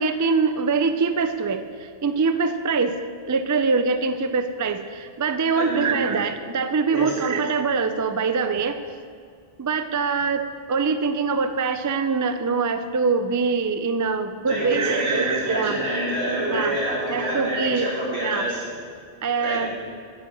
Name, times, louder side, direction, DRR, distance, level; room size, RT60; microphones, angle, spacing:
voice 1, 0.0-3.0 3.3-8.8 9.6-15.8 16.5-16.8 17.1-17.9 18.2-18.5 19.2-19.7, right 4 dB, 30° right, 9 dB, 0.3 m, -24 dB
voice 2, 5.5-5.9 6.9-7.2 14.5-18.6 19.4-19.7, right 1 dB, 80° right, -5 dB, 3.4 m, -26 dB
10.0 x 7.6 x 7.6 m, 2.2 s
omnidirectional pair, 1.1 m